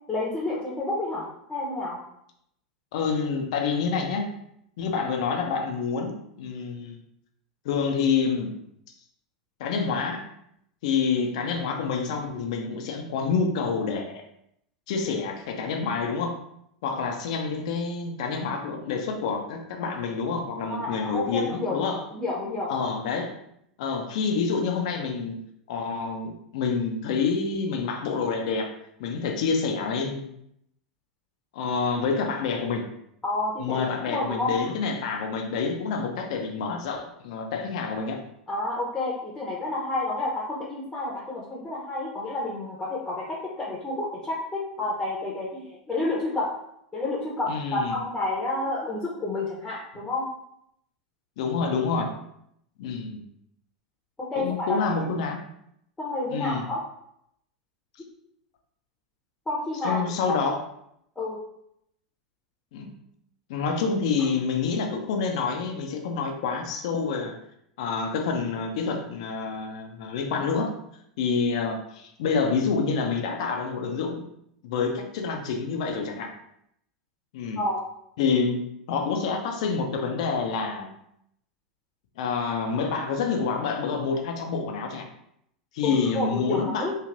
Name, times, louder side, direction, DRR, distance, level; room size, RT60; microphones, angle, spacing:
voice 1, 0.1-2.0 20.7-21.8 22.1-22.7 33.2-34.5 38.5-46.5 46.9-50.3 54.2-55.1 56.0-56.8 59.5-60.5 61.2-61.4 77.6-77.8 85.8-86.9, left 2 dB, 10° left, -5 dB, 0.8 m, -30 dB
voice 2, 2.9-4.3 4.8-7.0 7.6-8.5 9.6-10.3 10.8-14.2 14.9-16.4 16.8-22.0 22.7-23.3 23.8-25.4 25.7-28.7 29.0-30.3 31.5-32.9 33.6-38.2 47.5-48.0 51.4-52.1 52.8-53.2 54.4-55.4 56.3-56.6 59.8-60.6 62.7-62.9 63.5-67.3 67.8-70.7 71.2-74.3 74.6-76.3 77.3-77.6 78.2-78.6 78.9-80.9 82.2-85.0 85.7-86.9, left 5 dB, 60° left, 3 dB, 0.5 m, -27 dB
3.2 x 2.4 x 2.5 m, 0.75 s
hypercardioid pair, 90°, 4 cm